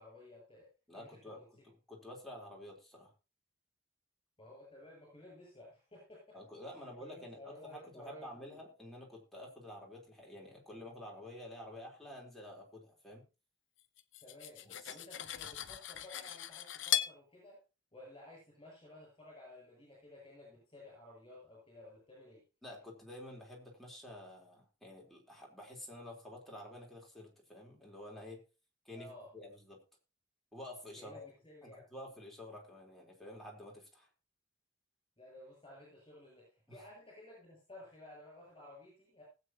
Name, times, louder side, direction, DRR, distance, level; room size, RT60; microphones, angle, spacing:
voice 1, 0.0-1.7 4.4-6.4 6.8-8.6 14.2-17.6 17.9-22.4 28.9-29.3 31.0-31.9 35.2-39.2, left 1 dB, 25° left, -2 dB, 7.6 m, -55 dB
voice 2, 0.9-1.4 1.9-3.1 6.3-13.2 14.6-15.0 22.6-28.4 28.8-29.8 30.5-31.3 31.6-34.1 36.7-36.8, left 1 dB, ahead, -3 dB, 3.9 m, -50 dB
Cutlery silverware, 14.0-17.2, left 12 dB, 75° left, 0.8 m, -38 dB
19.5 x 8.3 x 2.9 m, 0.31 s
head